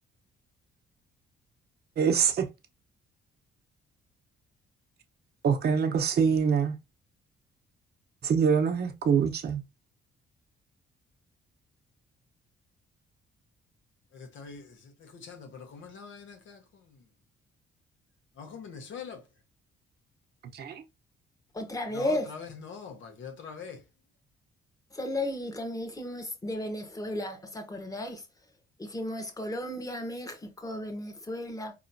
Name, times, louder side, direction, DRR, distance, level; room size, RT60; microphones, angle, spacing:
voice 1, 2.0-2.4 5.4-6.7 8.2-9.6 20.5-20.7, right 6 dB, 55° right, 0.9 m, -24 dB
voice 2, 15.2-16.5 18.4-19.2 21.9-22.1 22.7-23.8, left 6 dB, 75° left, 1.2 m, -43 dB
voice 3, 21.5-22.3 24.9-28.2 28.8-31.7, left 1 dB, 15° left, 1.1 m, -34 dB
4.3 x 3.0 x 2.6 m
cardioid pair, 90°, 20 cm